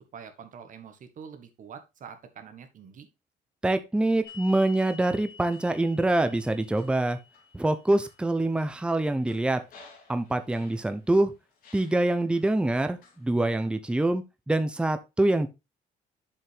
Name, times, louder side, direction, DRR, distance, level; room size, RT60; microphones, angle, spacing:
voice 1, 0.1-3.1, right 7 dB, 50° right, 8 dB, 1.5 m, -45 dB
voice 2, 3.6-7.2 7.5-9.6 10.1-11.3 11.7-15.5, right 2 dB, 5° right, 10 dB, 0.7 m, -25 dB
sound 1, 4.2-11.2 11.6-12.4 13.0-13.7, left 5 dB, 55° left, 3.0 m, -51 dB
7.4 x 5.3 x 3.4 m, 0.24 s
cardioid pair, 110°, 17 cm